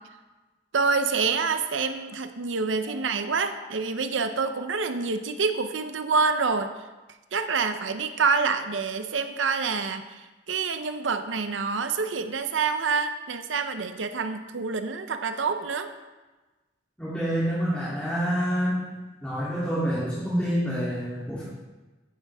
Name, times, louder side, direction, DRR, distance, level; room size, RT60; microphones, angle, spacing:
voice 1, 0.7-6.7 7.3-15.9, right 4 dB, 80° right, 8 dB, 0.7 m, -27 dB
voice 2, 17.0-18.9 19.2-21.4, equal, 5° left, -9 dB, 2.9 m, -27 dB
14.5 x 9.9 x 3.5 m, 1.2 s
head